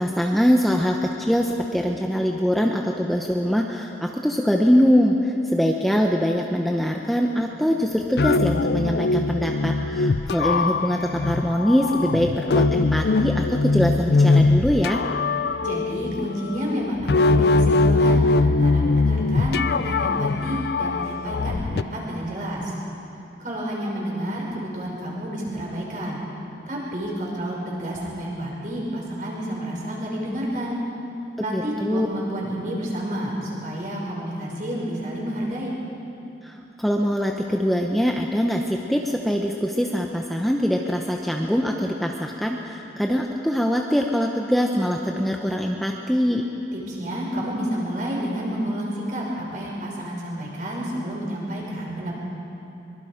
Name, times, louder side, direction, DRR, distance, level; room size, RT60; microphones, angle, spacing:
voice 1, 0.0-15.0 31.5-32.1 36.4-46.4, equal, ahead, 1 dB, 0.8 m, -23 dB
sound 1, 7.9-21.8, left 3 dB, 60° left, 0.4 m, -21 dB
voice 2, 15.6-22.6 23.4-26.2 26.7-30.8 31.4-35.7 46.7-52.1, equal, 45° right, -4 dB, 5.6 m, -30 dB
24.0 x 22.5 x 5.1 m, 2.9 s
head